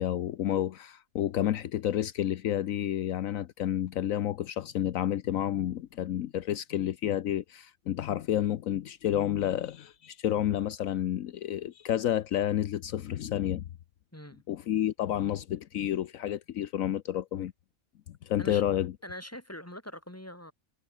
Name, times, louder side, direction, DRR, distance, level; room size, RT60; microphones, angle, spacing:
voice 1, 0.0-13.6 14.5-17.5 18.1-18.9, left 11 dB, 75° left, 1.1 m, -30 dB
voice 2, 14.1-14.4 18.4-18.6 19.0-20.5, left 1 dB, 10° left, 4.9 m, -43 dB
omnidirectional pair, 1.4 m